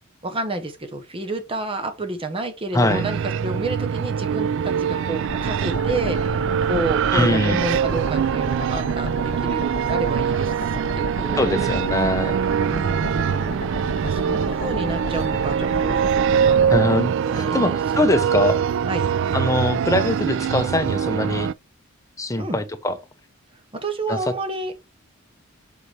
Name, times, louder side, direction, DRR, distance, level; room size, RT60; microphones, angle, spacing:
voice 1, 0.2-11.8 12.6-13.7 14.0-16.7 17.2-17.8 18.8-19.1 22.4-22.6 23.7-24.8, right 2 dB, 25° right, 0.9 m, -30 dB
voice 2, 2.7-3.0 7.1-7.6 11.4-12.3 16.7-18.6 19.3-21.5 22.2-22.9 24.1-24.2, left 1 dB, 15° left, 0.9 m, -22 dB
sound 1, 2.9-21.5, right 7 dB, 65° right, 0.3 m, -23 dB
sound 2, 5.2-16.8, left 1 dB, 40° left, 2.1 m, -33 dB
7.7 x 4.8 x 3.2 m
head